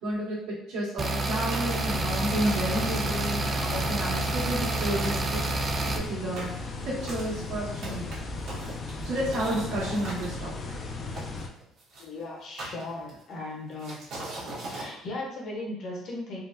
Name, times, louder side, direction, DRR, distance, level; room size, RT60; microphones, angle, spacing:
voice 1, 0.0-5.4 5.9-6.5 6.8-8.2 9.0-10.5, right 1 dB, 80° right, -7 dB, 1.5 m, -31 dB
sound 1, 1.0-6.0, right 2 dB, 30° right, 0.4 m, -29 dB
sound 2, 1.5-2.1 2.4-3.0 3.4-3.5 3.7-4.8 5.0-5.3 5.8-10.3 11.2-12.0 12.6-13.3 13.8-14.9, right 2 dB, 65° right, 1.2 m, -40 dB
sound 3, 1.8-11.5, left 3 dB, 35° left, 0.4 m, -36 dB
voice 2, 12.0-14.0 14.5-16.4, left 2 dB, 55° left, -2 dB, 0.9 m, -37 dB
3.8 x 2.1 x 2.6 m, 0.74 s
cardioid pair, 120°, 0 cm